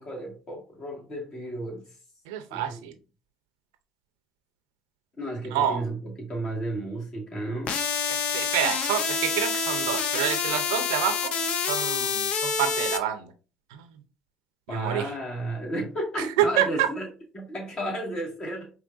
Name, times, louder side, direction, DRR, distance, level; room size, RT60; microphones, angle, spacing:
voice 1, 0.0-1.9 2.5-2.9 5.2-7.8 14.7-17.1 17.3-18.7, right 1 dB, 45° left, -2 dB, 2.3 m, -33 dB
voice 2, 2.3-2.9 5.5-5.8 8.1-11.3 11.7-13.3 13.7-13.9 14.7-15.1 16.4-16.9, right 10 dB, 90° right, 8 dB, 0.6 m, -27 dB
sound 1, 7.7-13.0, left 6 dB, 60° left, 0.6 m, -27 dB
4.8 x 2.9 x 2.6 m, 0.35 s
supercardioid pair, 80°, 2 cm